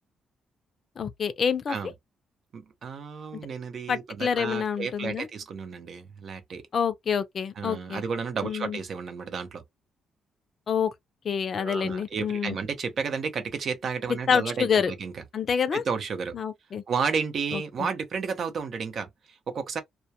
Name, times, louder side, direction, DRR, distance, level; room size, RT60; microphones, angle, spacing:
voice 1, 1.0-1.8 3.9-5.3 6.7-8.0 8.4-8.8 10.7-10.9 11.2-12.6 14.3-14.9 15.3-15.8 16.3-16.8 17.5-17.9, left 7 dB, 50° left, 0.5 m, -27 dB
voice 2, 2.5-6.6 7.6-9.6 11.6-15.2 15.7-16.3 16.9-19.8, right 5 dB, 55° right, 0.7 m, -32 dB
2.3 x 2.2 x 2.7 m
cardioid pair, 90°, 0 cm